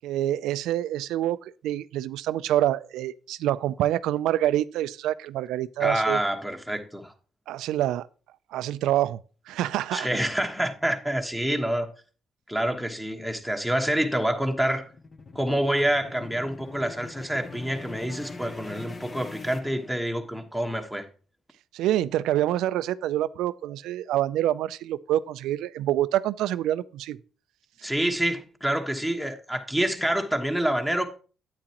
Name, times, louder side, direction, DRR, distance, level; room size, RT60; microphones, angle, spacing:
voice 1, 0.0-6.2 7.5-8.1 8.5-9.2 9.5-10.1 21.7-27.2, right 13 dB, 90° right, 0.3 m, -26 dB
voice 2, 5.8-7.1 9.9-11.9 12.5-14.8 15.3-21.1 27.8-31.2, right 1 dB, ahead, 1.2 m, -27 dB
sound 1, 13.4-20.4, left 3 dB, 35° left, 0.9 m, -42 dB
8.8 x 8.5 x 2.9 m
cardioid pair, 90°, 0 cm